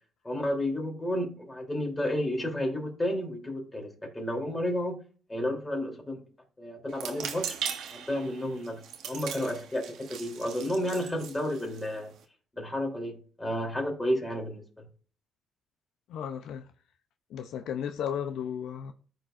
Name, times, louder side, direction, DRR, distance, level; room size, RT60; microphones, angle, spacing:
voice 1, 0.2-5.0 5.3-6.2 6.6-7.5 7.9-12.1 12.5-14.8, left 1 dB, 15° left, 3.2 m, -31 dB
sound 1, 6.9-12.2, right 8 dB, 80° right, 1.1 m, -39 dB
voice 2, 16.1-16.6 17.3-18.9, left 8 dB, 80° left, 0.6 m, -34 dB
14.0 x 4.8 x 2.5 m
cardioid pair, 90°, 0 cm